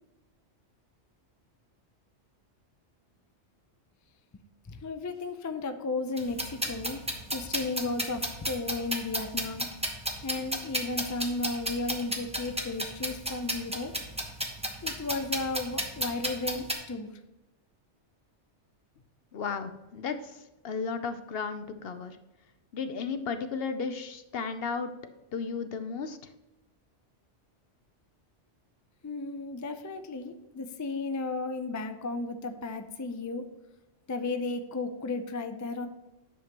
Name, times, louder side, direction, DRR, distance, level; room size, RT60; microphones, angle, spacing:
voice 1, 4.7-7.0 7.3-9.7 10.2-13.9 14.8-17.1 29.0-33.4 34.1-35.9, left 3 dB, 25° left, 7 dB, 0.4 m, -34 dB
sound 1, 6.2-16.7, equal, 5° right, 0.9 m, -33 dB
voice 2, 19.3-22.2 22.7-24.9 25.3-26.3, left 5 dB, 60° left, 9 dB, 0.8 m, -34 dB
10.0 x 6.6 x 3.0 m, 0.97 s
omnidirectional pair, 1.2 m